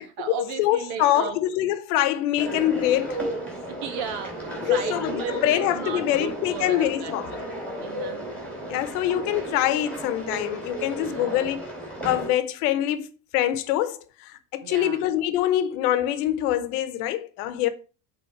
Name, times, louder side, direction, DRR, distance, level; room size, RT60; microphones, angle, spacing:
voice 1, 0.0-1.4 3.7-7.2 7.8-8.3 10.9-11.4 14.6-15.0, right 6 dB, 60° right, 1.4 m, -35 dB
voice 2, 0.6-3.2 4.7-7.3 8.6-11.6 12.0-13.1 13.3-14.0 14.5-17.7, left 12 dB, 85° left, 1.0 m, -24 dB
sound 1, 2.4-12.3, right 1 dB, 5° left, 2.5 m, -34 dB
8.0 x 3.7 x 4.5 m
cardioid pair, 150°, 44 cm